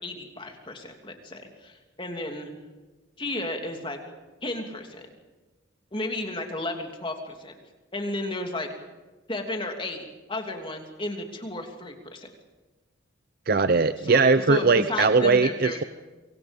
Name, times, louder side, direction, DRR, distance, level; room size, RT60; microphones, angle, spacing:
voice 1, 0.0-2.5 3.2-4.0 4.4-5.0 5.9-7.5 7.9-8.7 9.3-12.3 14.0-15.8, left 2 dB, 25° left, 3 dB, 3.0 m, -33 dB
voice 2, 13.5-15.8, right 4 dB, 50° right, 11 dB, 0.7 m, -20 dB
26.5 x 24.5 x 5.4 m, 1.2 s
head